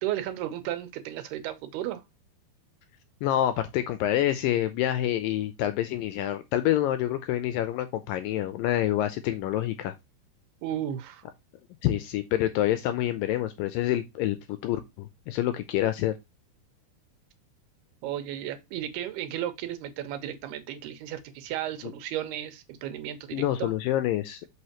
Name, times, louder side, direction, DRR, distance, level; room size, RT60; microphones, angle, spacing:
voice 1, 0.0-2.0 10.6-11.2 18.0-23.7, right 12 dB, 85° right, 3.0 m, -34 dB
voice 2, 3.2-9.9 11.8-16.1 21.8-21.9 23.3-24.4, left 13 dB, 80° left, 2.1 m, -27 dB
6.4 x 5.5 x 2.9 m
omnidirectional pair, 4.5 m